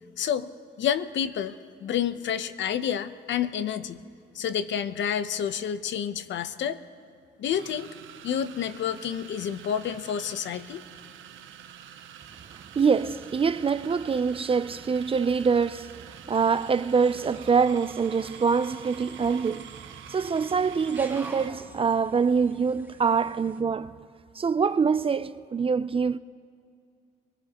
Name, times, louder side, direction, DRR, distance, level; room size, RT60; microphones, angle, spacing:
voice 1, 0.2-0.5 0.8-1.6 1.8-4.0 4.3-6.8 7.4-7.9 8.2-10.8, left 9 dB, 65° left, 0.8 m, -29 dB
sound 1, 6.2-6.3 7.4-21.6, right 9 dB, 80° right, 0.8 m, -47 dB
voice 2, 12.8-19.8 20.1-24.0 24.4-26.2, right 5 dB, 30° right, 0.4 m, -25 dB
sound 2, 16.3-23.6, right 2 dB, 10° right, 1.7 m, -49 dB
24.0 x 19.0 x 3.0 m
cardioid pair, 90°, 20 cm